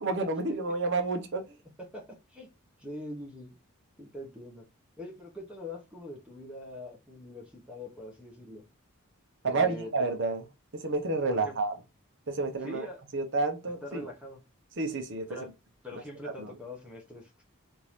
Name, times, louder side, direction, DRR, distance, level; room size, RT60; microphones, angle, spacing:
voice 1, 0.0-1.5 9.4-10.5 10.7-11.7 12.3-12.9 13.1-14.1 14.8-15.4 16.4-16.5, right 3 dB, 55° right, 0.8 m, -30 dB
voice 2, 1.8-2.5 2.8-3.5 4.0-4.6 5.0-8.6 9.5-9.9 11.3-11.6 12.6-13.0 13.8-14.4 15.3-15.5 15.8-17.3, left 1 dB, 5° right, 0.8 m, -43 dB
3.7 x 2.6 x 3.0 m
head